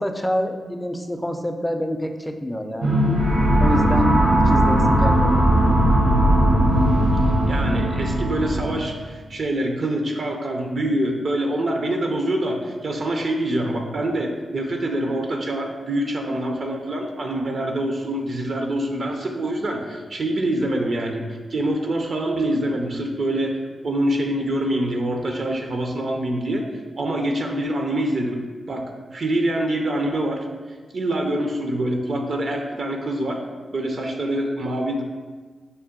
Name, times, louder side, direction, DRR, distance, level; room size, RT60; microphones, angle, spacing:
voice 1, 0.0-2.9 3.6-5.5, left 1 dB, 10° left, 6 dB, 0.4 m, -26 dB
sound 1, 2.8-8.8, right 1 dB, 85° right, 0.9 m, -18 dB
voice 2, 7.5-21.2 21.5-26.7 27.0-28.9 29.1-30.5 30.9-33.4 33.7-35.0, right 1 dB, 60° right, 2 dB, 0.4 m, -25 dB
5.4 x 2.2 x 3.6 m, 1.4 s
supercardioid pair, 45°, 0 cm